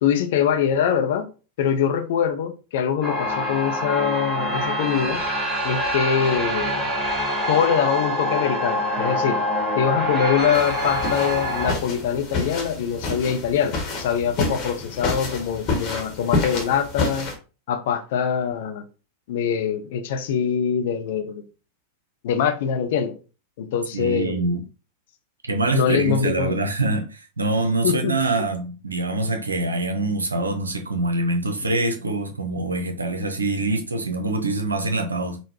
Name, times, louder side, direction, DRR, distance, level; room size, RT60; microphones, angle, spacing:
voice 1, 0.0-1.3 1.6-5.2 5.6-6.9 7.5-9.4 9.8-17.3 17.7-18.8 19.3-21.4 22.2-23.2 23.6-24.4 25.7-26.6 27.8-28.1, left 8 dB, 55° left, 0.5 m, -23 dB
sound 1, 3.0-11.7, left 1 dB, ahead, 1.4 m, -25 dB
sound 2, 10.5-17.3, left 3 dB, 35° left, 1.0 m, -28 dB
voice 2, 23.9-24.6 25.5-35.4, right 2 dB, 80° right, 0.5 m, -24 dB
3.8 x 2.1 x 2.8 m
figure-of-eight pair, 90°, 0 cm